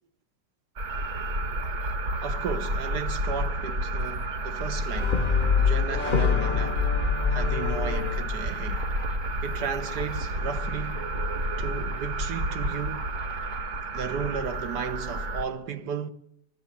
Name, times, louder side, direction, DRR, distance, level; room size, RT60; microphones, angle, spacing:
sound 1, 0.8-15.4, right 1 dB, 45° right, 1.6 m, -31 dB
voice 1, 2.2-5.2 5.6-6.9 7.3-8.9 9.4-11.0 11.6-13.1 13.9-16.1, right 7 dB, 70° right, 1.5 m, -34 dB
Brass instrument, 4.9-9.2, left 6 dB, 35° left, 0.9 m, -26 dB
21.0 x 13.0 x 9.7 m
omnidirectional pair, 1.9 m